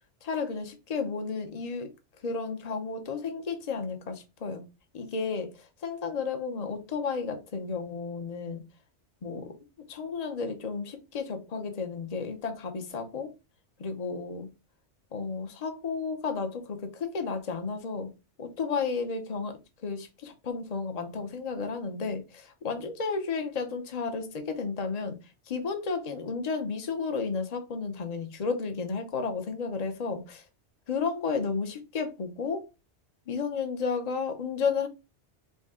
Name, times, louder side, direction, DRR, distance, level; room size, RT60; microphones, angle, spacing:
voice 1, 0.2-1.9 2.2-4.6 4.9-5.5 5.8-8.7 9.2-9.6 9.9-13.3 13.8-14.5 15.1-18.1 18.4-25.2 25.5-30.4 30.9-32.7 33.3-34.9, left 5 dB, 40° left, 0.8 m, -32 dB
5.3 x 2.3 x 3.7 m
omnidirectional pair, 1.2 m